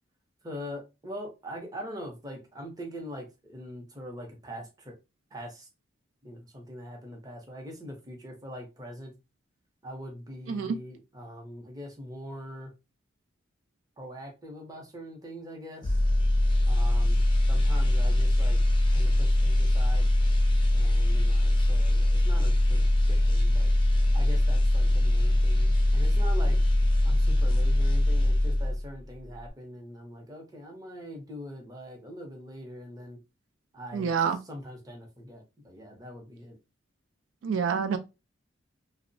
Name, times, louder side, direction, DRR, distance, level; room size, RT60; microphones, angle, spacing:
voice 1, 0.4-4.9 5.3-5.7 6.2-9.1 9.8-12.7 14.0-16.0 16.6-17.2 17.5-18.6 18.9-20.1 20.7-22.8 23.1-23.7 24.1-26.6 27.0-33.2 33.7-34.1 34.5-36.6, equal, 20° right, 0.6 m, -42 dB
sound 1, 15.8-29.0 29.3-29.5, left 1 dB, 25° left, 0.4 m, -22 dB
voice 2, 33.9-34.4 37.4-38.0, right 6 dB, 75° right, 0.3 m, -27 dB
2.7 x 2.0 x 2.6 m
head